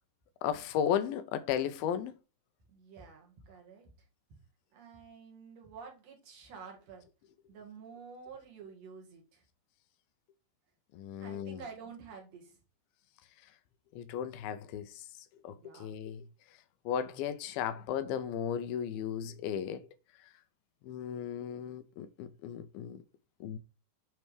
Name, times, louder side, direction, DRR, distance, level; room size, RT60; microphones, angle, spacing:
voice 1, 0.4-2.1 10.9-11.6 14.0-15.0 15.4-15.5 15.8-16.2 16.9-19.8 20.9-23.0 23.4-23.6, left 9 dB, 85° left, 2.1 m, -35 dB
voice 2, 2.7-3.9 4.7-7.1 7.5-9.4 11.2-12.6 15.5-15.9, right 5 dB, 55° right, 2.1 m, -50 dB
9.0 x 3.4 x 4.8 m
omnidirectional pair, 4.8 m